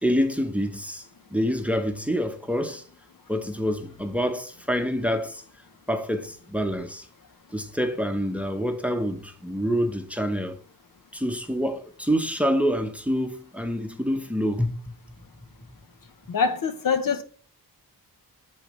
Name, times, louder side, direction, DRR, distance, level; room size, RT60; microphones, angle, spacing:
voice 1, 0.0-1.0 1.3-2.8 3.3-5.4 5.9-7.1 7.5-10.6 11.1-14.9, equal, 5° right, 0.9 m, -26 dB
voice 2, 16.3-17.2, left 5 dB, 60° left, 0.9 m, -24 dB
8.9 x 7.1 x 3.2 m
wide cardioid pair, 110°, 37 cm